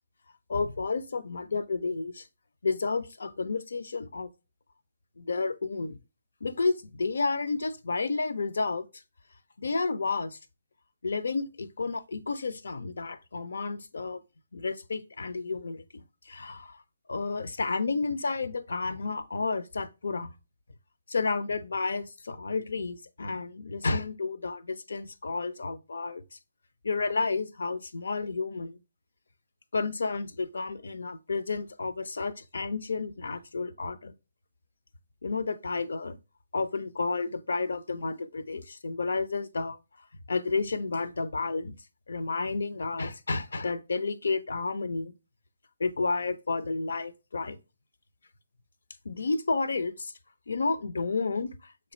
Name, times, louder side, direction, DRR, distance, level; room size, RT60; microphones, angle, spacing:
voice 1, 0.5-2.3 2.6-4.3 5.2-6.0 6.4-8.9 9.6-10.4 11.0-14.2 14.5-16.8 17.1-20.3 21.1-26.4 26.8-28.8 29.7-34.1 35.2-36.2 36.5-39.8 40.3-41.7 42.1-45.1 45.8-47.6 49.1-50.1 50.5-51.9, left 4 dB, 65° left, 0.4 m, -31 dB
3.2 x 2.2 x 4.2 m
figure-of-eight pair, 145°, 0 cm